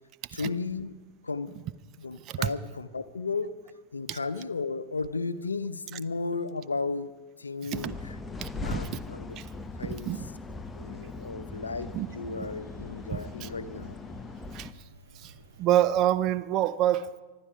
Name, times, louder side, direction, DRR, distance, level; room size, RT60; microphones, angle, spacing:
voice 1, 0.3-1.0 1.2-1.5 2.0-3.5 3.9-7.1 7.4-8.2 8.6-9.4 9.8-10.1 10.7-14.0, left 4 dB, 75° left, 13 dB, 0.7 m, -34 dB
voice 2, 7.6-7.9 8.4-8.8 9.4-9.5 10.1-10.3 11.9-12.1 13.1-13.5 14.5-14.7 15.2-15.3 15.6-17.2, right 12 dB, 35° right, 13 dB, 0.6 m, -27 dB
sound 1, 7.7-14.7, left 3 dB, 10° left, 0.8 m, -40 dB
sound 2, 10.8-16.0, right 2 dB, 75° right, 3.4 m, -54 dB
24.5 x 11.5 x 4.8 m, 1.2 s
figure-of-eight pair, 90°, 0 cm